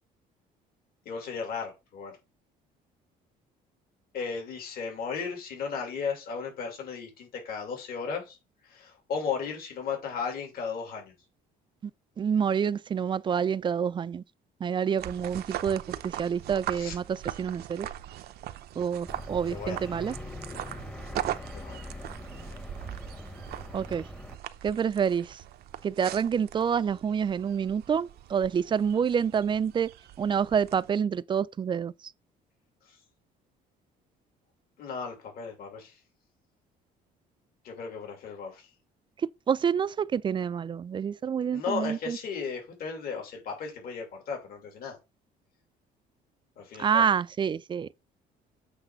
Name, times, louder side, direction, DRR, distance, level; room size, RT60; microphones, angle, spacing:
voice 1, 1.0-2.2 4.1-8.4 8.6-11.1 16.7-16.9 19.5-19.9 21.5-22.0 32.9-33.0 34.8-36.0 37.6-38.7 41.5-45.0 46.6-47.1, left 5 dB, 65° left, 2.6 m, -35 dB
voice 2, 12.2-14.2 14.6-17.9 18.8-20.1 23.7-24.0 24.6-25.4 25.8-29.9 30.2-31.9 39.5-42.2 46.8-47.9, right 7 dB, 30° right, 0.4 m, -27 dB
sound 1, 15.0-30.9, right 12 dB, 70° right, 0.7 m, -40 dB
sound 2, 19.1-24.4, left 1 dB, 5° left, 0.9 m, -42 dB
8.1 x 3.2 x 5.7 m
cardioid pair, 110°, 17 cm